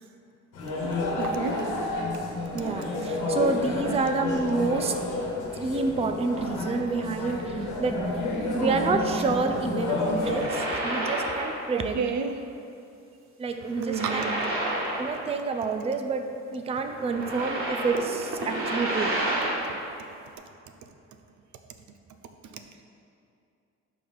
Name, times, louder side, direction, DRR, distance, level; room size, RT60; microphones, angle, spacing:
sound 1, 0.5-10.5, left 2 dB, 85° left, 1.2 m, -30 dB
voice 1, 1.2-1.7 11.7-12.4 13.8-14.5 19.6-19.7, right 6 dB, 70° right, 6 dB, 0.6 m, -30 dB
voice 2, 2.5-4.9 5.5-8.0 8.5-12.0 13.4-14.3 15.0-19.2, right 4 dB, 20° right, 6 dB, 0.4 m, -28 dB
sound 2, 10.1-11.8 12.1-12.3 13.6-15.5 15.8-15.9 16.8-19.8, right 1 dB, 45° right, 1.6 m, -30 dB
5.5 x 4.8 x 5.3 m, 2.6 s
cardioid pair, 90°, 30 cm